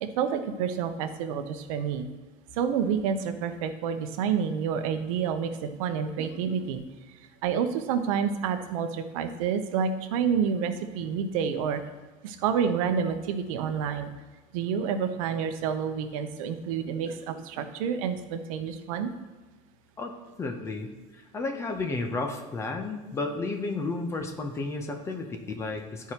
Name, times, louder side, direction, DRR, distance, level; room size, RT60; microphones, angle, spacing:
voice 1, 0.0-2.1 2.6-6.8 7.4-11.8 12.2-14.1 14.5-19.1, right 7 dB, 90° right, 8 dB, 0.7 m, -29 dB
voice 2, 20.4-26.1, left 3 dB, 15° left, 5 dB, 0.6 m, -32 dB
11.5 x 4.6 x 2.9 m, 1.3 s
cardioid pair, 165°, 17 cm